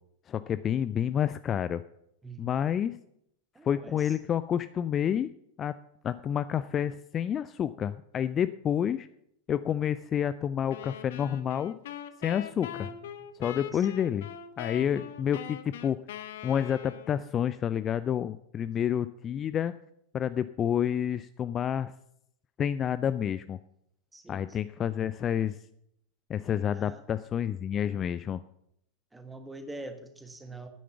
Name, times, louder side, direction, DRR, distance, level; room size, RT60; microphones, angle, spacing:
voice 1, 0.3-1.8 2.4-3.0 3.6-5.3 5.6-5.8 6.0-9.1 9.5-11.7 12.2-12.9 13.4-14.3 14.6-16.0 16.4-19.8 20.1-21.9 22.6-23.6 24.3-25.6 26.3-28.4, left 9 dB, 25° left, 14 dB, 0.3 m, -29 dB
voice 2, 3.5-4.1 12.7-12.9 13.6-13.9 14.7-15.0 18.7-18.9 24.1-24.5 26.7-27.0 29.1-30.7, right 2 dB, 10° right, 7 dB, 1.5 m, -45 dB
sound 1, 10.7-17.3, left 10 dB, 55° left, 0.9 m, -42 dB
9.6 x 9.3 x 6.9 m, 0.75 s
figure-of-eight pair, 90°, 0 cm